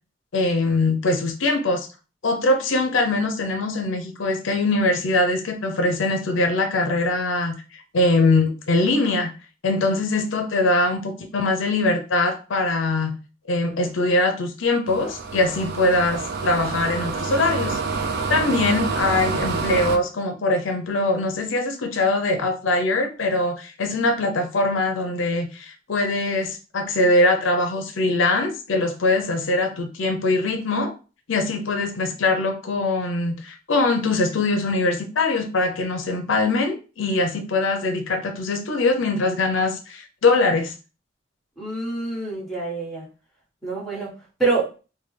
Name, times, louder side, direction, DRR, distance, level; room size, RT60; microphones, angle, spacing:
voice 1, 0.3-1.9 2.2-9.3 9.6-13.2 13.5-17.8 18.3-30.9 31.3-40.7, left 2 dB, 75° left, 4 dB, 0.5 m, -22 dB
sound 1, 14.9-20.0, right 4 dB, 55° right, 0.3 m, -27 dB
voice 2, 41.6-43.0 43.6-44.8, right 3 dB, ahead, -5 dB, 1.3 m, -26 dB
3.3 x 2.2 x 3.2 m, 0.33 s
head